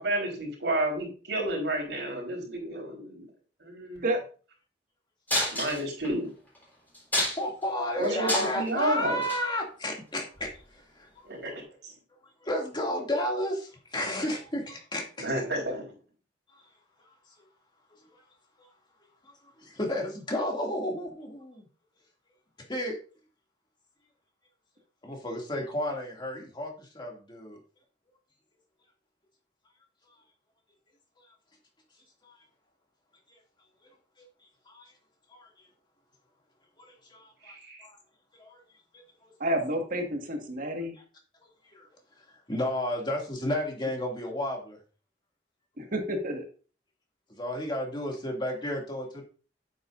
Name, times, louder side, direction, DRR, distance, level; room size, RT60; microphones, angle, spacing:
voice 1, 0.0-3.2 3.6-4.1 5.5-6.3 8.0-9.2 11.2-11.5 11.8-11.9 15.2-15.9 37.4-37.9, right 1 dB, 85° right, 0 dB, 4.4 m, -31 dB
sound 1, 5.3-6.1 6.5-6.6 6.9-7.6 8.0-8.7 9.2-9.4 10.4-10.5, left 1 dB, 10° left, 4.1 m, -28 dB
voice 2, 7.2-11.3 12.4-15.3 18.6-18.7 19.6-21.6 22.7-23.0 25.0-27.6 32.2-32.3 34.2-34.3 34.7-34.9 35.3-35.5 36.8-37.6 37.8-38.0 38.4-38.6 39.2-39.3 41.7-41.9 42.5-44.8 47.3-49.2, left 1 dB, 25° left, 0 dB, 2.5 m, -32 dB
voice 3, 39.4-40.9 45.8-46.4, right 1 dB, 50° right, 3 dB, 1.8 m, -29 dB
9.2 x 8.5 x 2.6 m, 0.37 s
head